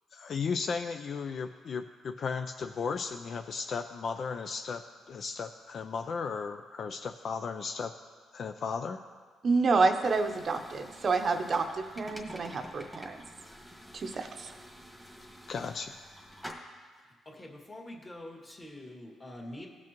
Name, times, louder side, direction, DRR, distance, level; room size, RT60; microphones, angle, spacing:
voice 1, 0.1-4.8 5.1-7.9 8.3-9.0 15.5-15.9, left 5 dB, 55° left, 7 dB, 0.4 m, -35 dB
voice 2, 9.4-13.2 13.9-14.5, right 4 dB, 45° right, 6 dB, 0.7 m, -28 dB
sound 1, 10.0-16.5, equal, 5° left, 1.5 m, -48 dB
voice 3, 17.3-19.7, left 1 dB, 25° left, 0 dB, 2.0 m, -45 dB
17.5 x 6.1 x 3.0 m, 1.5 s
cardioid pair, 90°, 0 cm